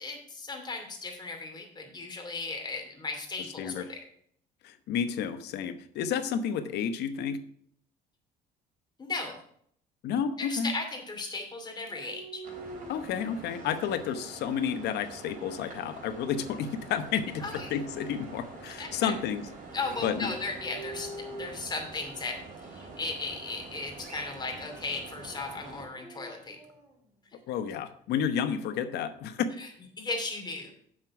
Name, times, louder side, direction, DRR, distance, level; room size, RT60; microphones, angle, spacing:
voice 1, 0.0-4.0 9.0-9.4 10.4-12.4 17.4-17.7 18.8-19.1 19.7-26.6 29.6-29.7 30.0-30.7, left 3 dB, 25° left, 3 dB, 2.7 m, -36 dB
voice 2, 4.6-7.4 10.0-10.7 12.9-19.4 20.0-20.3 27.5-29.5, left 8 dB, 80° left, 11 dB, 1.0 m, -31 dB
Dog, 11.8-14.0 14.7-15.4 19.5-21.9 22.6-23.1 25.7-27.0, right 1 dB, 25° right, 3.2 m, -46 dB
sound 1, 12.4-25.9, right 3 dB, 55° right, 3.9 m, -46 dB
7.5 x 6.6 x 5.9 m, 0.64 s
cardioid pair, 110°, 17 cm